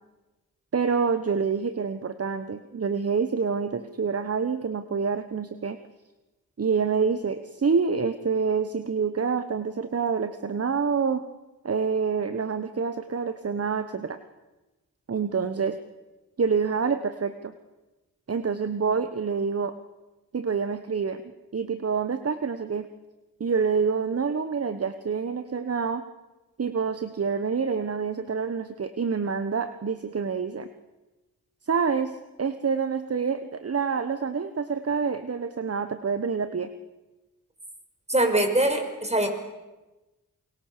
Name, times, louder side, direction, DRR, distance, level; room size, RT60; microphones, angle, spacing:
voice 1, 0.7-5.8 6.6-11.2 11.6-14.2 15.1-15.8 16.4-17.5 18.3-19.8 20.3-21.2 21.5-22.9 23.4-26.0 26.6-30.7 31.7-36.7, right 5 dB, 45° right, 11 dB, 1.3 m, -27 dB
voice 2, 38.1-39.3, right 1 dB, 20° right, 5 dB, 5.3 m, -23 dB
27.5 x 23.0 x 6.8 m, 1.1 s
cardioid pair, 65°, 35 cm